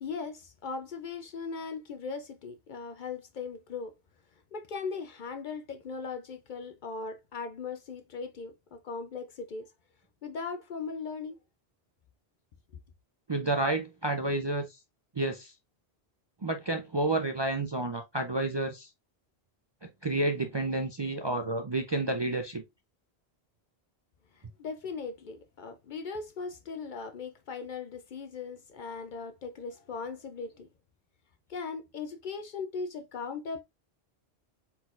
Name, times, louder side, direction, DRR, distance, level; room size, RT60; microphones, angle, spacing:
voice 1, 0.0-3.9 4.5-9.7 10.2-11.4 24.4-30.7 31.5-33.6, left 5 dB, 60° left, 0.6 m, -39 dB
voice 2, 13.3-14.7 15.2-15.5 16.4-18.9 20.0-22.6, right 2 dB, 35° right, 0.4 m, -30 dB
4.2 x 4.0 x 2.4 m
omnidirectional pair, 1.1 m